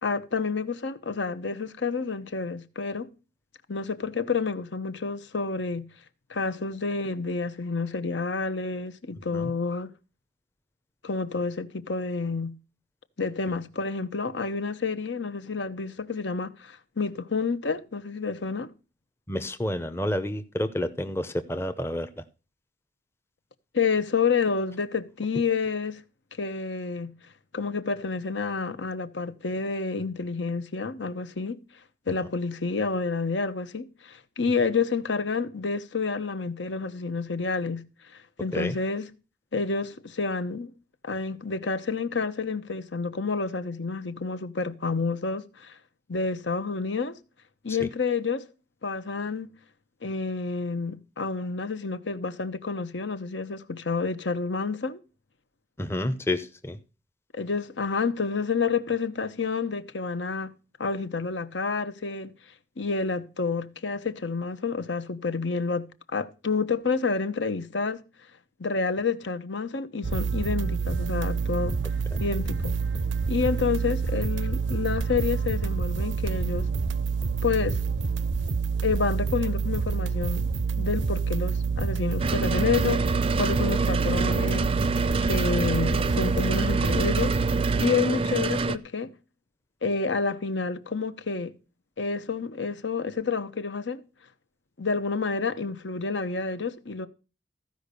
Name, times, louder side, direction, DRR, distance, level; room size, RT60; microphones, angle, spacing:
voice 1, 0.0-3.1 3.7-5.9 6.3-9.9 11.0-12.6 13.2-18.7 23.7-26.0 26.3-27.1 27.5-31.6 32.1-39.1 39.5-40.7 41.0-45.8 46.1-47.2 47.6-48.5 48.8-49.5 50.0-55.0 57.3-60.5 60.8-62.3 62.8-68.0 68.6-71.8 72.2-72.8 73.3-76.7 77.4-77.8 78.8-80.5 80.8-84.7 85.2-87.4 87.8-89.1 89.8-91.5 92.0-94.0 94.8-97.1, left 4 dB, 70° left, 0.9 m, -29 dB
voice 2, 19.3-22.2 38.5-38.8 47.7-47.9 55.8-56.8 72.1-72.2, left 1 dB, 15° left, 0.7 m, -30 dB
sound 1, 70.0-87.9, right 5 dB, 80° right, 0.6 m, -27 dB
sound 2, 82.2-88.8, right 3 dB, 30° right, 0.5 m, -27 dB
14.5 x 5.2 x 6.7 m
head